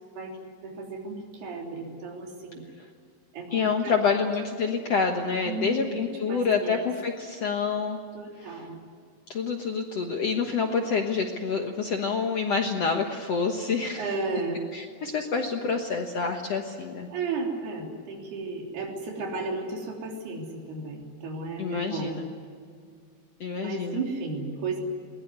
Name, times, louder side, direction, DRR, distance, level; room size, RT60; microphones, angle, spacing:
voice 1, 0.6-2.6 3.3-4.0 5.5-6.0 6.3-6.9 8.1-8.8 14.0-14.6 17.1-22.2 23.6-24.8, right 3 dB, 80° right, 1 dB, 5.4 m, -34 dB
voice 2, 3.5-8.0 8.4-8.6 9.3-14.1 14.7-17.1 21.6-22.3 23.4-24.0, left 5 dB, 60° left, 3 dB, 1.7 m, -27 dB
22.0 x 20.0 x 9.6 m, 2.3 s
omnidirectional pair, 4.5 m